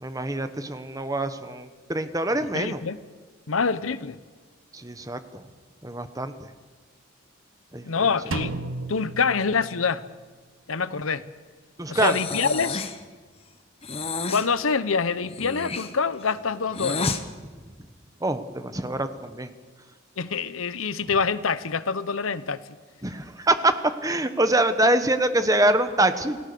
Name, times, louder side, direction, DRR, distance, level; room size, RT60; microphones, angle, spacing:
voice 1, 0.0-2.8 4.7-5.4 5.8-6.3 7.7-7.9 11.8-12.2 18.2-19.5 23.0-26.4, right 1 dB, 15° right, 1.2 m, -24 dB
voice 2, 2.5-3.0 3.5-4.2 7.8-8.6 8.9-10.0 10.7-11.2 11.9-12.8 14.3-17.1 20.2-22.6, left 5 dB, 90° left, 0.9 m, -26 dB
Drum, 8.3-10.2, right 2 dB, 90° right, 1.4 m, -34 dB
Breathing, 12.0-13.0 13.8-14.5 15.3-17.2, left 4 dB, 30° left, 1.2 m, -30 dB
28.5 x 18.0 x 6.9 m
head